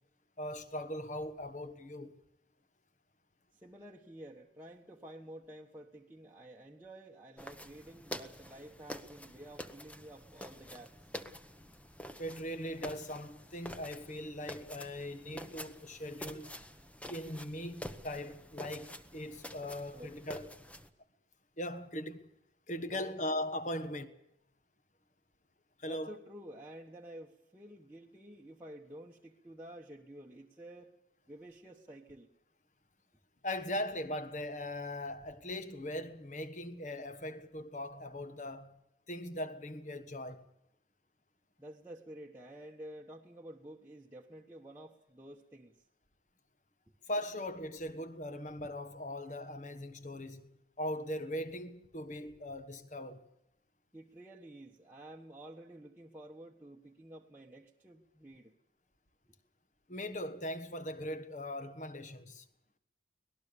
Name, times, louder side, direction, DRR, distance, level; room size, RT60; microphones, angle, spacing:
voice 1, 0.4-2.2 12.2-16.5 17.1-20.5 21.6-22.2 22.7-24.1 25.8-26.1 33.4-38.8 39.1-40.5 47.1-50.5 50.8-53.3 59.9-62.4, left 1 dB, 40° left, 1.5 m, -40 dB
voice 2, 3.5-11.1 19.9-20.2 22.9-23.2 25.9-30.9 31.3-32.3 41.6-45.8 53.9-58.5 59.3-59.4, right 1 dB, 10° right, 1.2 m, -51 dB
sound 1, 7.4-20.9, equal, 5° left, 0.9 m, -48 dB
24.5 x 19.0 x 6.9 m
head